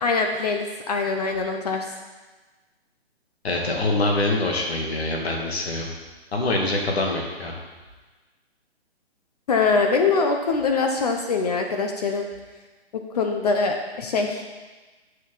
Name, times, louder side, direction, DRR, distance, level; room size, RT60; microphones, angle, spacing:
voice 1, 0.0-1.9 9.5-12.3 12.9-14.5, left 4 dB, 35° left, 3 dB, 0.7 m, -23 dB
voice 2, 3.4-5.9 6.3-7.6, left 2 dB, 70° left, 0 dB, 2.2 m, -24 dB
8.5 x 6.5 x 3.9 m, 1.3 s
hypercardioid pair, 150°, 32 cm